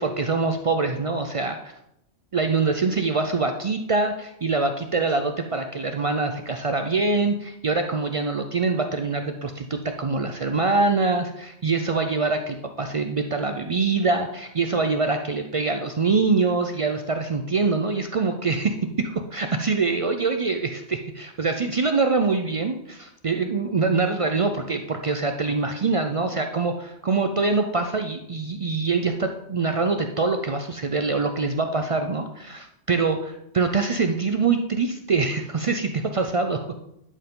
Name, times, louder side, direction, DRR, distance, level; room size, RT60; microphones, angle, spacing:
voice 1, 0.0-1.7 2.3-23.0 23.2-36.6, right 4 dB, 60° right, 6 dB, 0.3 m, -24 dB
11.0 x 4.7 x 3.7 m, 0.79 s
omnidirectional pair, 1.2 m